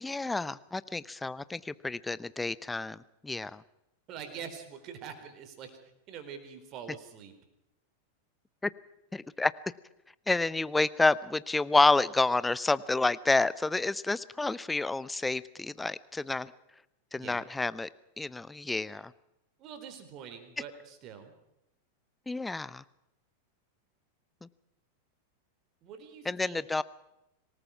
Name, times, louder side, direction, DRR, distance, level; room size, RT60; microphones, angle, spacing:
voice 1, 0.0-3.0 3.2-3.6 8.6-8.7 9.1-9.5 10.3-16.5 17.1-17.9 18.2-19.1 22.3-22.8 24.4-24.5 26.2-26.8, left 3 dB, 10° left, 18 dB, 0.8 m, -29 dB
voice 2, 4.1-5.7 6.1-7.3 17.2-17.4 19.6-21.3 25.8-26.6, right 7 dB, 35° right, 9 dB, 4.2 m, -44 dB
26.0 x 19.0 x 5.9 m, 0.87 s
figure-of-eight pair, 90°, 0 cm